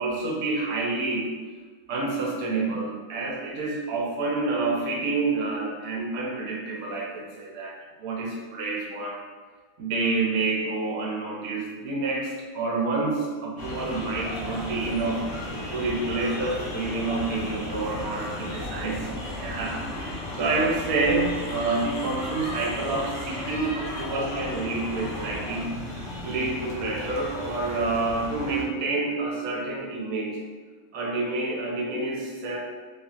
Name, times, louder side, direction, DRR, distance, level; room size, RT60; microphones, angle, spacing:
voice 1, 0.0-1.3 1.9-9.2 9.8-15.3 15.7-25.7 26.2-30.4 30.9-32.6, right 3 dB, 75° right, -2 dB, 1.1 m, -28 dB
sound 1, 13.6-28.6, left 1 dB, 55° left, 0.6 m, -35 dB
2.7 x 2.7 x 2.3 m, 1.4 s
omnidirectional pair, 1.5 m